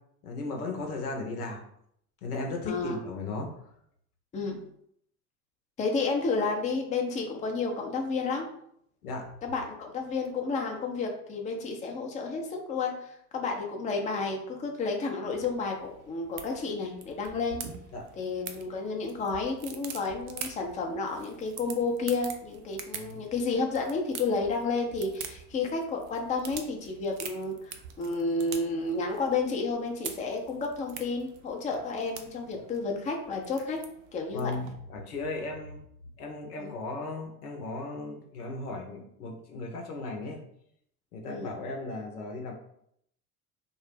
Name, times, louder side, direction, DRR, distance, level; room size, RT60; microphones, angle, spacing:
voice 1, 0.2-1.6 2.2-3.5 9.0-9.3 17.9-18.0 22.9-23.2 31.7-31.8 32.5-32.6 34.3-35.8 36.2-40.4 41.1-42.5, left 3 dB, 80° left, 1 dB, 0.7 m, -36 dB
voice 2, 2.7-3.0 4.3-4.6 5.8-8.4 9.4-17.6 18.2-33.8 34.1-34.5 36.6-36.7 41.3-41.5, left 3 dB, 15° left, 2 dB, 0.4 m, -31 dB
sound 1, 15.3-34.7, right 7 dB, 65° right, 0.5 m, -45 dB
2.3 x 2.0 x 3.2 m, 0.70 s
hypercardioid pair, 65°, 44 cm